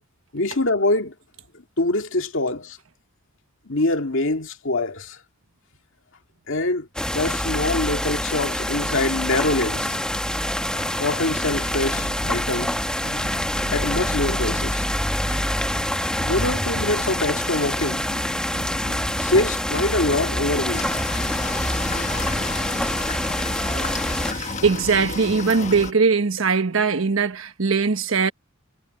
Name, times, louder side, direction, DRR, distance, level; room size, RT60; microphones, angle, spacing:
voice 1, 0.3-1.1 1.8-2.8 3.7-5.2 6.5-6.9 7.1-10.0 11.0-12.8 13.7-14.9 16.2-18.1 19.2-21.0, left 2 dB, 65° left, 2.4 m, -24 dB
sound 1, 7.0-24.3, left 1 dB, 5° left, 2.0 m, -26 dB
sound 2, 9.6-21.0, left 1 dB, 80° left, 6.7 m, -40 dB
sound 3, 20.7-25.9, left 3 dB, 35° left, 1.3 m, -31 dB
voice 2, 23.7-24.0 24.3-28.3, right 4 dB, 70° right, 1.3 m, -21 dB
head